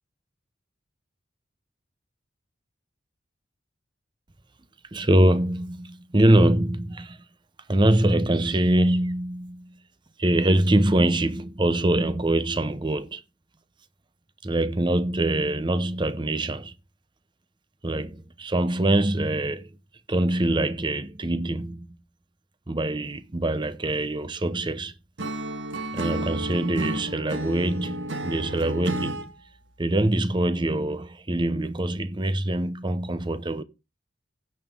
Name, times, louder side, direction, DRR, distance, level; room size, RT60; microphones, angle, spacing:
voice 1, 4.9-7.2 7.7-9.8 10.2-13.2 14.4-16.7 17.8-19.7 20.1-21.9 22.7-24.9 25.9-29.3 29.8-33.6, right 1 dB, 25° right, 0.7 m, -24 dB
Acoustic guitar / Strum, 25.2-29.3, right 1 dB, 75° right, 1.6 m, -32 dB
16.0 x 5.4 x 3.6 m
head